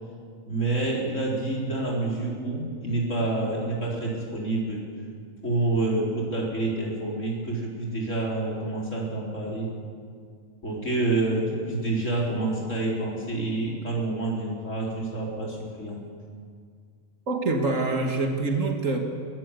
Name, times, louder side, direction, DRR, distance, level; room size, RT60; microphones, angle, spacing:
voice 1, 0.5-4.8 5.4-9.7 10.6-16.0, right 2 dB, 70° left, -3 dB, 4.8 m, -28 dB
voice 2, 17.3-19.0, right 3 dB, 75° right, 3 dB, 2.1 m, -25 dB
23.0 x 14.0 x 8.3 m, 2.1 s
omnidirectional pair, 1.4 m